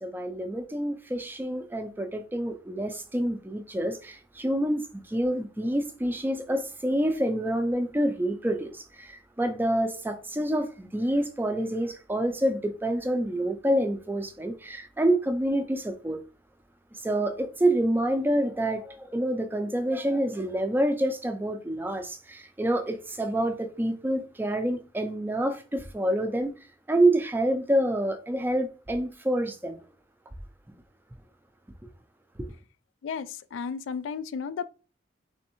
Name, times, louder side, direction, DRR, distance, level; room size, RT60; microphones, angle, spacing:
voice 1, 0.0-16.2 17.0-26.5 26.9-29.9 32.4-32.5, right 1 dB, 10° right, 0.4 m, -27 dB
voice 2, 33.0-34.7, left 6 dB, 90° left, 0.3 m, -33 dB
3.4 x 3.1 x 2.9 m
head